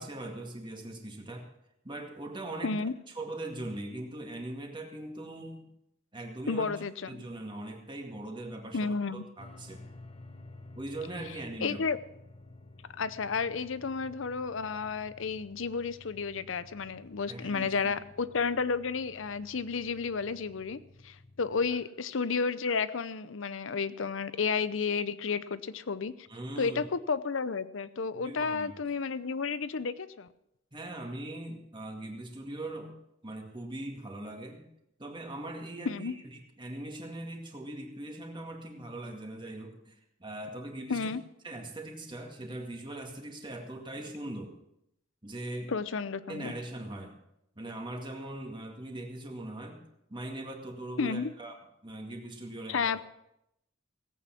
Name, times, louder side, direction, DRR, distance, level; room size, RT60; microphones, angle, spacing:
voice 1, 0.0-1.5 1.8-2.8 3.2-5.7 6.1-6.7 7.1-9.9 10.8-11.8 17.3-17.9 21.7-21.8 26.3-26.8 28.1-28.7 30.7-32.9 33.2-34.6 35.0-39.9 40.2-41.1 41.4-44.5 45.2-45.7 46.3-47.2 47.6-49.8 50.1-53.1, right 1 dB, 25° right, 2 dB, 2.0 m, -41 dB
voice 2, 2.6-2.9 6.5-7.2 8.7-9.2 11.6-12.0 13.0-26.3 26.6-30.3 35.9-36.1 40.9-41.2 45.7-46.5 51.0-51.3 52.7-53.0, left 5 dB, 70° left, 15 dB, 0.7 m, -32 dB
sound 1, 9.4-21.7, left 2 dB, 30° left, 1.0 m, -53 dB
17.5 x 8.7 x 5.9 m, 0.83 s
head